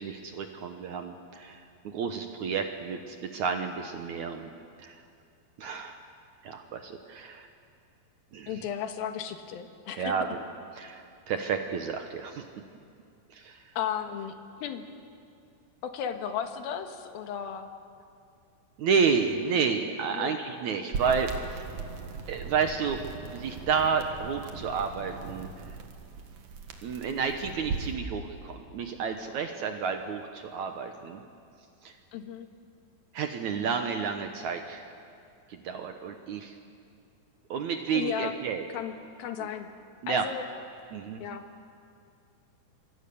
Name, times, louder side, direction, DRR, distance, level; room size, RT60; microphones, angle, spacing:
voice 1, 0.0-4.5 4.8-5.0 5.6-6.0 6.4-7.5 8.3-8.6 10.0-10.3 10.7-12.4 13.3-13.6 18.8-21.7 22.3-23.0 23.2-25.8 26.8-31.2 31.8-31.9 33.1-34.9 35.5-36.5 37.5-38.7 40.0-40.2 40.9-41.2, right 6 dB, 70° right, 5 dB, 1.8 m, -31 dB
voice 2, 8.5-10.1 13.7-14.8 15.8-17.7 20.1-20.4 32.1-32.5 37.9-38.3 38.7-38.9 39.2-39.7 40.1-40.4 41.2-41.4, left 8 dB, 70° left, 6 dB, 3.0 m, -34 dB
sound 1, 20.9-28.0, right 5 dB, 55° right, 2.6 m, -39 dB
27.5 x 24.0 x 7.0 m, 2.4 s
omnidirectional pair, 4.7 m